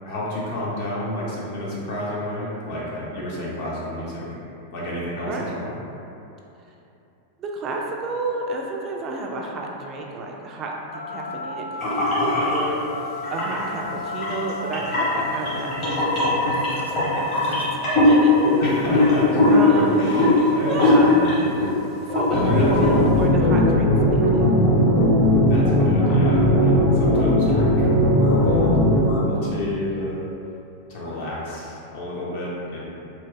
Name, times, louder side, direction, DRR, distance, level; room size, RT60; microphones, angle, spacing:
voice 1, 0.0-4.3 4.7-5.7 18.6-21.8 22.3-23.0 25.5-27.9 28.2-28.8 29.1-30.2 30.9-32.8, left 1 dB, 50° left, -6 dB, 0.8 m, -29 dB
voice 2, 5.3-5.6 7.4-12.8 13.3-15.7 16.0-16.9 17.1-17.6 17.9-18.7 19.5-20.1 20.7-21.2 22.1-24.4, right 2 dB, 30° right, 0 dB, 0.3 m, -31 dB
Telephone, 10.9-17.8, left 3 dB, 90° left, 0.3 m, -35 dB
sound 1, 11.8-12.6 13.2-13.7 14.2-21.7 22.0-22.3 22.7-22.9, left 1 dB, 30° left, 1.0 m, -20 dB
sound 2, 22.3-29.0, equal, 15° left, 0.7 m, -18 dB
2.9 x 2.0 x 3.5 m, 2.8 s
figure-of-eight pair, 90°, 0 cm